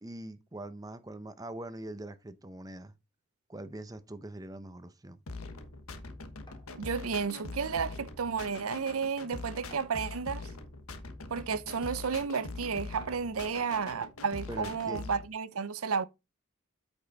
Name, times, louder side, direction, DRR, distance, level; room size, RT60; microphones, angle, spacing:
voice 1, 0.0-2.9 3.5-5.2 14.5-15.0, right 1 dB, 15° right, 0.6 m, -43 dB
sound 1, 5.3-15.3, left 3 dB, 85° left, 1.2 m, -43 dB
sound 2, 6.5-6.7 7.9-8.0 8.4-8.5 9.7-10.3 11.2-11.3 13.0-13.4, equal, 20° left, 2.0 m, -58 dB
voice 2, 6.8-10.5 11.3-16.0, right 5 dB, 80° right, 0.6 m, -32 dB
8.6 x 5.4 x 4.0 m
head